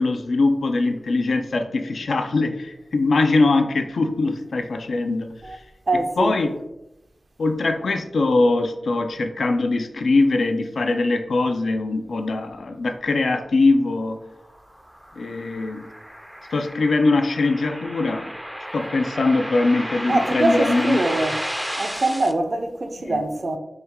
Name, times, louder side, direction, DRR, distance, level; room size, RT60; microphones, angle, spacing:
voice 1, 0.0-5.6 6.2-6.5 7.4-14.2 15.2-15.8 16.5-18.3 18.7-21.0 23.1-23.2, left 3 dB, 85° left, 0.4 m, -22 dB
voice 2, 5.9-6.4 20.0-21.4 21.8-23.6, right 2 dB, 55° right, 0.5 m, -23 dB
sound 1, 14.5-22.3, equal, 5° right, 0.4 m, -32 dB
4.3 x 2.3 x 3.5 m
wide cardioid pair, 65°, 0 cm